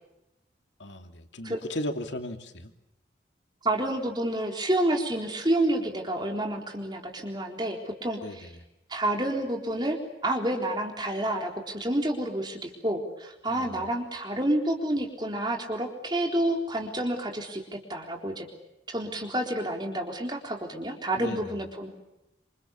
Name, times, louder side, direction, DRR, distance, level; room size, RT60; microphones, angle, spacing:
voice 1, 0.8-2.7 8.2-8.6 13.5-13.8 21.2-21.5, left 1 dB, 85° left, 6 dB, 2.8 m, -36 dB
voice 2, 3.6-8.5 8.9-18.5 18.9-21.9, right 1 dB, 25° right, 2 dB, 3.8 m, -29 dB
28.0 x 27.5 x 7.0 m, 0.88 s
head